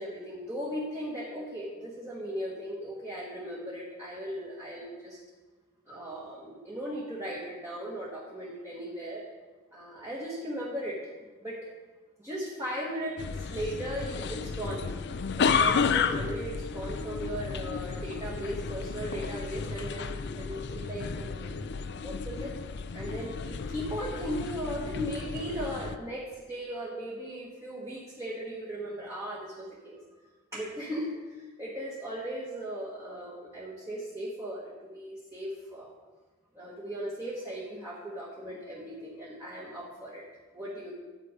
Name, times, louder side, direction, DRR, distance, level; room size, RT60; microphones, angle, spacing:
voice 1, 0.0-5.2 5.9-9.2 9.7-11.0 11.4-11.7 12.2-14.9 15.3-21.6 22.0-22.5 22.9-30.0 30.5-35.9 36.5-40.2 40.5-40.9, equal, 15° right, -5 dB, 1.4 m, -37 dB
sound 1, 13.2-26.0, left 5 dB, 55° left, 0.5 m, -32 dB
10.0 x 7.8 x 4.9 m, 1.3 s
head